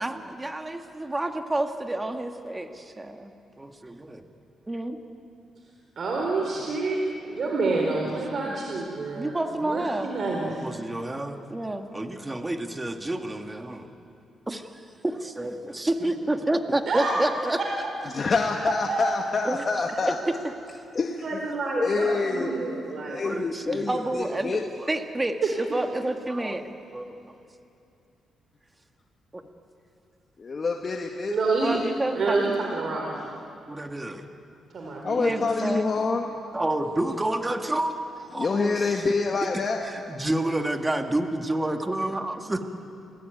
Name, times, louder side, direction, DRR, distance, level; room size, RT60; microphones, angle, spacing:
voice 1, 0.0-3.3 3.6-4.3 4.7-5.0 7.7-8.2 8.5-8.6 9.2-10.1 10.5-13.9 14.5-14.7 15.0-17.6 19.4-19.6 20.0-20.8 22.1-22.3 23.2-27.5 29.3-29.4 31.6-32.6 33.7-34.3 35.2-35.9 36.5-39.1 39.8-42.6, right 1 dB, 20° right, 5 dB, 2.0 m, -29 dB
voice 2, 6.0-9.4 9.6-10.6 16.9-17.1 18.6-19.2 21.2-23.2 25.4-25.5 31.3-31.8 32.2-33.3 34.7-35.4, right 3 dB, 60° right, 0 dB, 4.1 m, -28 dB
voice 3, 18.1-20.1 20.9-21.4 21.8-22.5 23.1-24.6 30.4-31.3 35.0-36.3 38.4-39.8, left 4 dB, 45° left, 1 dB, 2.0 m, -26 dB
29.5 x 19.5 x 9.3 m, 2.6 s
cardioid pair, 75°, 0 cm